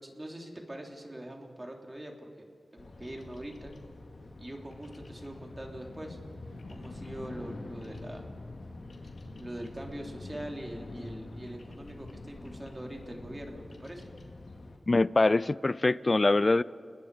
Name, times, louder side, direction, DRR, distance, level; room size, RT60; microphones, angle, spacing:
voice 1, 0.0-2.3 2.7-3.7 4.4-6.2 6.7-8.2 9.4-14.1, right 1 dB, 25° right, 1 dB, 3.3 m, -43 dB
Bird vocalization bird call bird song, 2.8-14.8, left 2 dB, 75° left, 1.9 m, -45 dB
voice 2, 14.9-16.6, left 2 dB, 45° left, 18 dB, 0.4 m, -24 dB
29.5 x 21.0 x 5.0 m, 2.3 s
cardioid pair, 45°, 0 cm